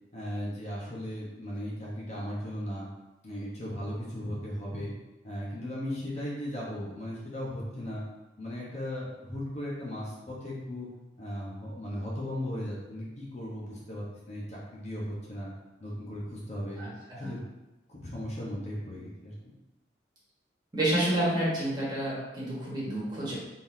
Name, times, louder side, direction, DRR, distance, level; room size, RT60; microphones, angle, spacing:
voice 1, 0.1-2.9 3.2-4.9 5.2-8.0 8.4-10.9 11.2-15.5 15.8-16.8 17.1-17.5 17.9-19.3, equal, 40° left, -5 dB, 1.1 m, -37 dB
voice 2, 20.7-23.3, right 1 dB, 25° right, -8 dB, 1.5 m, -29 dB
4.1 x 3.8 x 2.7 m, 1.0 s
head